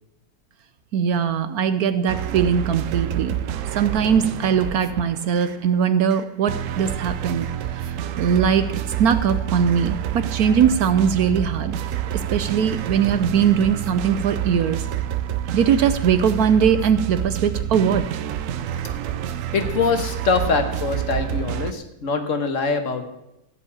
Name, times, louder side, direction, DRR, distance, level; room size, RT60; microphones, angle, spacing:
voice 1, 0.9-3.4 3.7-7.5 7.7-8.7 9.0-11.7 12.3-14.8 15.5-18.1, right 7 dB, 65° right, 12 dB, 1.0 m, -20 dB
sound 1, 2.1-5.6 6.1-21.7, right 11 dB, 90° right, 0.7 m, -28 dB
voice 2, 19.5-23.1, left 4 dB, 45° left, 7 dB, 1.5 m, -23 dB
15.5 x 5.4 x 8.6 m, 0.90 s
omnidirectional pair, 2.0 m